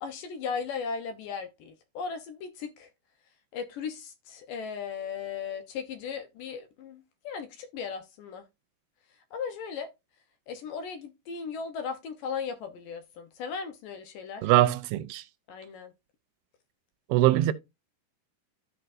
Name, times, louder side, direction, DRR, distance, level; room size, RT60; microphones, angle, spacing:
voice 1, 0.0-2.9 3.5-8.4 9.3-9.9 10.5-14.5 15.5-15.9, left 6 dB, 75° left, 2.2 m, -37 dB
voice 2, 14.4-15.2 17.1-17.5, right 15 dB, 85° right, 2.4 m, -22 dB
13.5 x 4.5 x 2.5 m
omnidirectional pair, 4.6 m